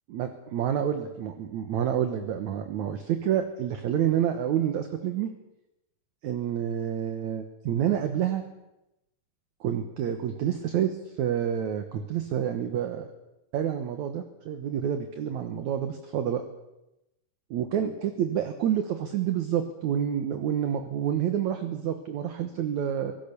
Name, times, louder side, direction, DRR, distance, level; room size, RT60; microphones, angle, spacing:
voice 1, 0.1-5.3 6.2-8.4 9.6-10.9 11.2-13.1 13.5-16.4 17.5-23.1, right 9 dB, 65° right, 7 dB, 2.1 m, -28 dB
25.0 x 18.0 x 6.9 m, 0.91 s
omnidirectional pair, 4.5 m